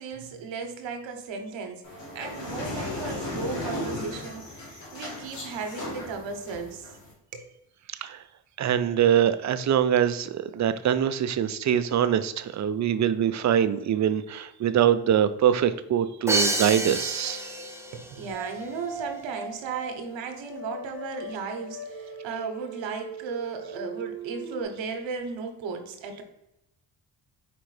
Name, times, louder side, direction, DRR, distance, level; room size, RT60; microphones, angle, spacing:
voice 1, 0.0-1.8 2.1-6.9 7.3-7.5 17.9-26.2, right 5 dB, 80° right, 5 dB, 0.9 m, -35 dB
sound 1, 1.8-7.1, left 1 dB, 85° left, 1.5 m, -36 dB
voice 2, 7.9-8.2 8.6-17.5, right 9 dB, 40° right, 12 dB, 0.5 m, -24 dB
Crash cymbal, 16.3-18.1, right 2 dB, 5° right, 0.8 m, -28 dB
sound 2, 18.3-24.6, right 3 dB, 10° left, 1.3 m, -40 dB
4.8 x 3.4 x 3.2 m, 0.88 s
supercardioid pair, 55°, 44 cm